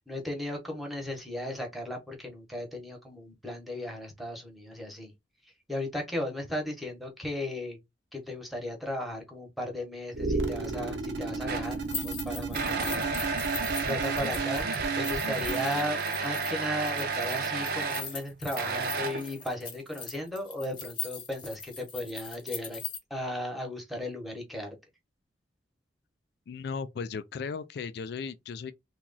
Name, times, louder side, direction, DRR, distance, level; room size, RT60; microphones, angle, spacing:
voice 1, 0.1-5.1 5.7-7.8 8.1-13.1 13.4-22.8 23.1-24.7, left 1 dB, ahead, 1.0 m, -36 dB
sound 1, 10.1-15.9, right 3 dB, 80° right, 0.8 m, -34 dB
sound 2, 11.5-11.8 12.5-18.1 18.6-19.4, right 4 dB, 55° right, 0.6 m, -31 dB
sound 3, 11.7-23.0, left 6 dB, 25° left, 0.9 m, -41 dB
voice 2, 26.5-28.7, left 5 dB, 65° left, 0.3 m, -36 dB
2.9 x 2.3 x 3.9 m
head